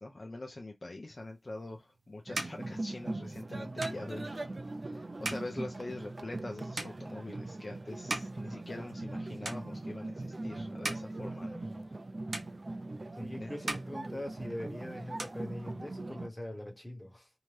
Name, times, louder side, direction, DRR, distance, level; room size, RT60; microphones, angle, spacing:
voice 1, 0.0-4.5 4.8-11.6 13.4-13.5, left 2 dB, 50° left, 0.6 m, -44 dB
sound 1, 1.5-9.2 9.4-10.1 10.6-12.0 12.3-13.2 13.5-14.7 15.0-16.1, right 2 dB, 85° right, 0.6 m, -42 dB
sound 2, 2.3-16.3, right 2 dB, 45° right, 0.4 m, -40 dB
voice 2, 13.1-17.3, left 1 dB, 15° left, 1.1 m, -42 dB
2.7 x 2.2 x 3.1 m
wide cardioid pair, 60°, 0 cm